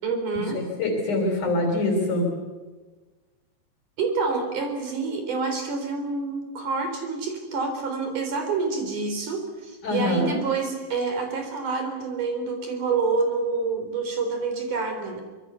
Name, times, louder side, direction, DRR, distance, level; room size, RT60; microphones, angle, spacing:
voice 1, 0.0-0.6 4.0-15.2, right 4 dB, 65° right, 4 dB, 5.3 m, -27 dB
voice 2, 0.5-2.3 9.8-10.3, left 2 dB, 60° left, 2 dB, 4.9 m, -24 dB
24.5 x 23.5 x 7.0 m, 1.3 s
omnidirectional pair, 4.0 m